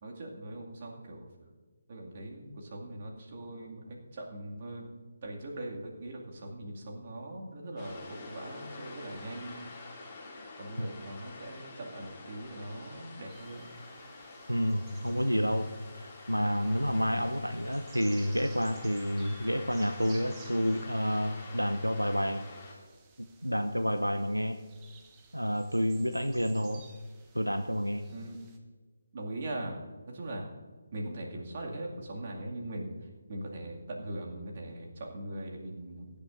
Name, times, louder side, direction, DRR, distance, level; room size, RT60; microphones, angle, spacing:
voice 1, 0.0-1.5 1.9-9.7 10.6-13.7 28.1-28.4 29.1-29.8 30.1-30.4 30.9-32.9 33.3-36.2, right 1 dB, 35° right, -1 dB, 2.3 m, -41 dB
sound 1, 7.8-22.7, left 3 dB, 15° left, 2.6 m, -48 dB
sound 2, 13.3-28.6, right 5 dB, 15° right, 1.0 m, -57 dB
voice 2, 14.5-22.5 23.2-24.6 25.3-26.8 27.3-28.0, equal, 90° right, 8 dB, 0.7 m, -29 dB
22.0 x 10.5 x 2.6 m, 1.4 s
figure-of-eight pair, 150°, 0 cm